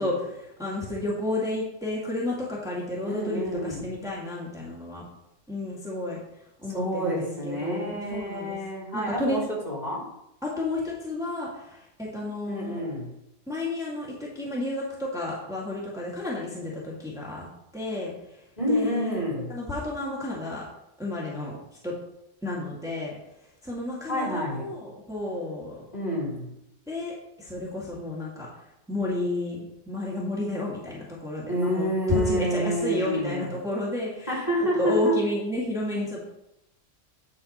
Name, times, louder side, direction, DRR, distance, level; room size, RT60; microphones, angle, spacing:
voice 1, 0.0-5.1 5.5-6.2 6.6-8.6 8.9-9.4 10.4-12.8 13.5-17.5 17.7-18.1 18.7-19.2 19.5-20.6 21.0-21.5 21.8-21.9 22.4-23.2 23.6-25.8 26.9-28.5 28.9-29.6 29.9-34.4 34.8-36.2, left 2 dB, 5° right, -6 dB, 2.0 m, -31 dB
voice 2, 3.0-3.8 6.7-10.0 12.5-13.1 18.6-19.6 24.1-24.7 25.9-26.5 31.5-33.6 34.3-35.2, equal, 35° left, -4 dB, 3.4 m, -28 dB
9.6 x 6.7 x 4.3 m, 0.84 s
omnidirectional pair, 1.3 m